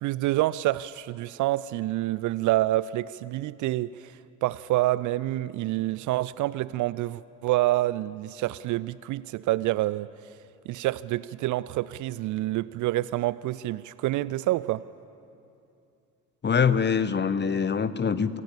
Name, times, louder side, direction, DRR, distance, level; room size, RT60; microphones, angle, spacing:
voice 1, 0.0-10.1 10.7-14.8, right 16 dB, 45° right, 19 dB, 0.5 m, -27 dB
voice 2, 16.4-18.4, left 6 dB, 25° left, 14 dB, 1.0 m, -24 dB
25.5 x 16.5 x 7.3 m, 2.7 s
figure-of-eight pair, 50°, 43 cm